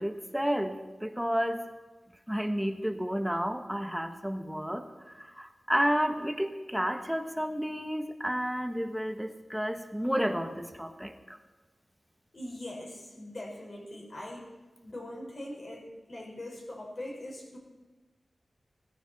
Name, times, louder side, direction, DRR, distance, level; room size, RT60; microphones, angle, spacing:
voice 1, 0.0-1.6 2.3-11.4, equal, 5° right, 6 dB, 1.2 m, -31 dB
voice 2, 12.3-14.5 14.8-17.6, left 1 dB, 50° left, -1 dB, 4.6 m, -42 dB
16.5 x 14.5 x 4.1 m, 1.2 s
wide cardioid pair, 80°, 0 cm